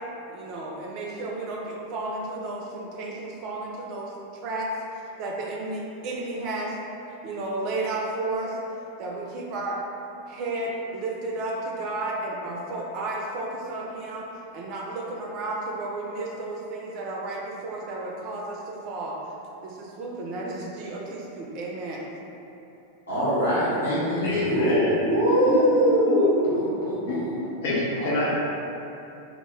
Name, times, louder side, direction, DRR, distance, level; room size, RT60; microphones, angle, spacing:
voice 1, 0.3-4.1 4.4-4.7 4.9-6.8 7.2-8.6 9.0-9.8 10.3-19.2 19.6-22.1, right 2 dB, 40° right, -2 dB, 0.4 m, -32 dB
voice 2, 23.1-27.4 28.0-28.3, equal, 85° left, -13 dB, 1.1 m, -23 dB
voice 3, 24.2-26.3 27.6-28.3, left 1 dB, 50° left, -6 dB, 0.5 m, -26 dB
2.1 x 2.0 x 3.4 m, 2.9 s
figure-of-eight pair, 90°, 0 cm